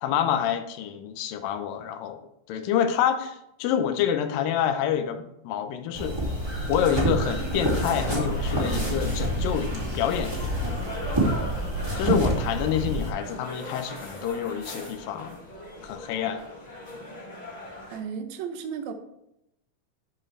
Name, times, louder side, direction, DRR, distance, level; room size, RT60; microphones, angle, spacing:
voice 1, 0.0-2.2 2.5-6.2 6.7-10.4 12.0-15.4 15.8-16.4, left 9 dB, 80° left, 7 dB, 2.4 m, -27 dB
sound 1, 5.9-13.1, right 1 dB, 10° right, 1.5 m, -27 dB
sound 2, 8.0-18.0, left 1 dB, 20° left, 1.3 m, -40 dB
voice 2, 17.9-18.9, right 7 dB, 70° right, 7 dB, 1.8 m, -34 dB
12.0 x 4.9 x 3.3 m, 0.82 s
omnidirectional pair, 4.0 m